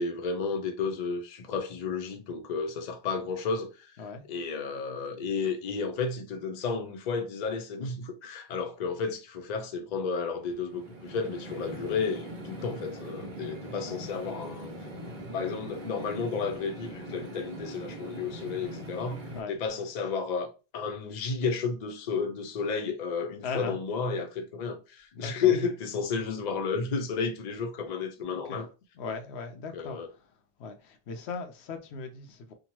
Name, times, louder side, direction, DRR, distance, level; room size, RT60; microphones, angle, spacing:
voice 1, 0.0-3.9 4.3-14.7 15.3-20.5 20.7-28.7 29.7-30.1, left 5 dB, 50° left, 0.6 m, -32 dB
sound 1, 10.3-19.4, right 1 dB, 55° right, 0.9 m, -41 dB
voice 2, 13.7-14.4 19.3-19.5 23.4-23.8 25.1-25.5 28.3-28.6 29.0-30.0 30.6-32.5, left 4 dB, 90° left, 0.8 m, -38 dB
2.8 x 2.2 x 2.9 m
omnidirectional pair, 1.1 m